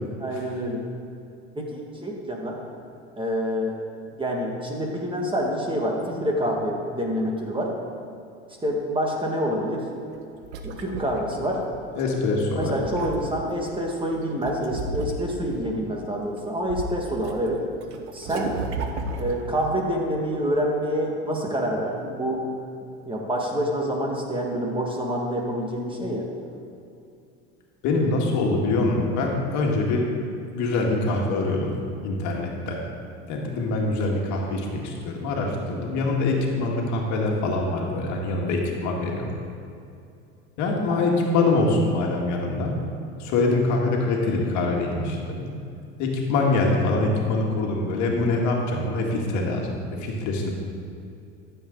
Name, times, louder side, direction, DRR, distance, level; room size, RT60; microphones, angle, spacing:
voice 1, 0.2-0.8 1.6-2.6 3.2-3.8 4.2-7.7 8.6-9.9 10.6-11.6 12.6-17.6 18.1-18.6 19.2-22.5 22.8-26.3 40.9-41.1 46.9-47.1, equal, 15° right, -1 dB, 1.8 m, -27 dB
sound 1, 10.2-12.0 12.5-13.6 14.4-15.6 16.1-17.3 17.6-19.7, right 3 dB, 85° right, 0.9 m, -33 dB
voice 2, 12.0-12.7 27.8-30.0 30.5-31.7 32.0-32.8 33.3-39.3 40.6-42.8 43.2-45.5 46.0-49.7 50.0-50.5, left 2 dB, 55° left, 0 dB, 1.9 m, -24 dB
13.0 x 7.2 x 3.9 m, 2.5 s
hypercardioid pair, 90°, 34 cm